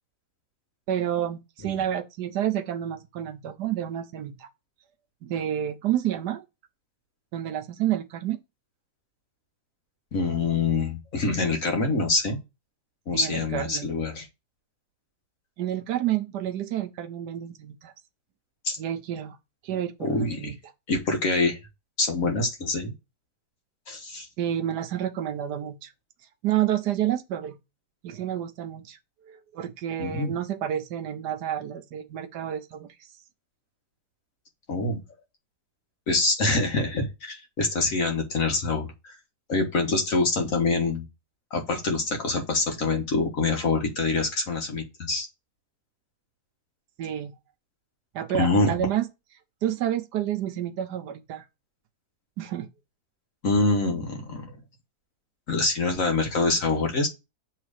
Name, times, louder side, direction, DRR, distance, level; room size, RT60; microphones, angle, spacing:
voice 1, 0.9-4.5 5.2-6.4 7.3-8.4 13.1-13.9 15.6-17.9 18.8-19.4 19.6-20.6 24.4-25.9 26.4-27.6 28.0-29.0 29.2-32.9 47.0-47.3 48.1-49.1 49.6-51.4 52.4-52.7, right 11 dB, 75° right, 1.3 m, -29 dB
voice 2, 10.1-12.4 13.1-14.3 18.6-18.8 20.0-20.5 20.9-21.6 22.0-22.9 23.9-24.3 30.0-30.4 34.7-35.0 36.1-39.1 39.5-41.0 41.5-45.3 48.3-48.7 53.4-54.6 55.5-57.1, left 3 dB, 55° left, 1.6 m, -25 dB
7.1 x 3.2 x 4.8 m
omnidirectional pair, 1.8 m